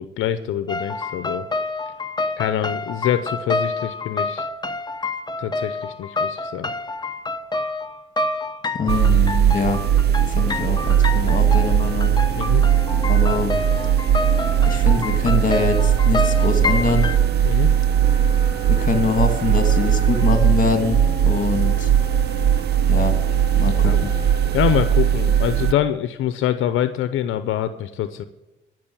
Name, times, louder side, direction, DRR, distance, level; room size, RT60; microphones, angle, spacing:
voice 1, 0.0-1.5 2.4-4.5 5.4-6.7 12.4-12.6 17.4-17.7 23.8-24.0 24.5-28.3, left 11 dB, 85° left, 12 dB, 0.7 m, -25 dB
sound 1, 0.7-17.2, left 3 dB, 20° left, 1.0 m, -28 dB
voice 2, 8.7-9.8 10.3-12.1 13.1-13.5 14.6-17.1 18.7-21.9 22.9-23.2 23.6-24.1, left 4 dB, 40° left, 7 dB, 2.4 m, -24 dB
sound 2, 8.9-25.7, right 9 dB, 55° right, 0.5 m, -19 dB
Wind instrument woodwind instrument, 10.4-25.9, right 1 dB, 20° right, 5.1 m, -35 dB
13.5 x 6.3 x 8.7 m, 1.0 s
cardioid pair, 90°, 20 cm